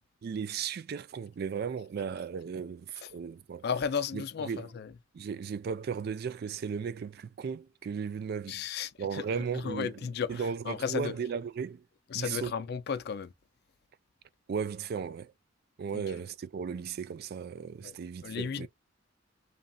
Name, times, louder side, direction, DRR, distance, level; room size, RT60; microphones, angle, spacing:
voice 1, 0.2-3.7 4.1-4.7 5.1-8.6 9.0-11.8 12.1-12.5 14.5-15.3 15.8-18.7, right 6 dB, 50° right, 0.3 m, -36 dB
voice 2, 3.6-4.9 8.5-9.2 9.5-11.1 12.1-13.3 15.9-16.0 17.8-18.0 18.2-18.7, left 6 dB, 55° left, 0.4 m, -34 dB
3.0 x 2.5 x 2.2 m
head